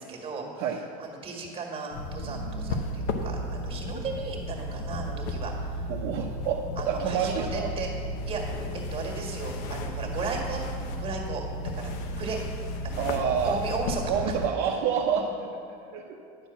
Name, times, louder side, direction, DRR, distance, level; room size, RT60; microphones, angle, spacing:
voice 1, 0.0-0.6 1.0-5.8 6.8-7.9 8.2-8.7 8.9-10.7 11.0-11.9 12.2-12.4 12.8-14.0 15.1-15.3, right 4 dB, 25° right, 0 dB, 1.7 m, -36 dB
sound 1, 1.9-14.5, left 1 dB, 80° left, 0.8 m, -33 dB
voice 2, 2.2-2.8 5.9-7.7 13.0-13.6 14.1-15.6 15.9-16.2, right 7 dB, 60° right, 0 dB, 0.7 m, -28 dB
10.0 x 4.3 x 7.1 m, 2.5 s
supercardioid pair, 135°, 20 cm